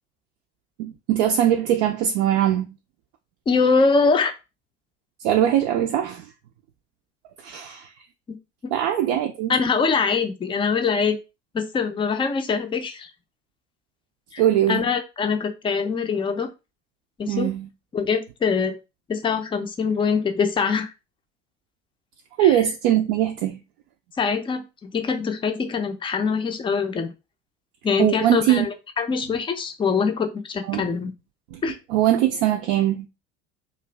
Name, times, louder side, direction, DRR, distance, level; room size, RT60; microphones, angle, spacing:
voice 1, 0.8-2.7 5.2-6.3 7.4-7.9 8.7-9.6 14.4-14.9 17.3-17.7 22.4-23.6 28.0-28.7 30.7-30.9 31.5-31.6 31.9-33.1, right 11 dB, 55° right, 0.5 m, -21 dB
voice 2, 3.5-4.3 8.3-8.4 8.6-8.7 9.5-11.2 11.5-13.1 14.3-14.4 14.7-16.5 17.2-17.5 17.9-18.8 19.1-20.9 22.4-22.6 24.2-27.1 27.8-31.1 31.6-31.8, left 5 dB, 15° left, 0.5 m, -23 dB
2.5 x 2.4 x 3.2 m
figure-of-eight pair, 60°, 34 cm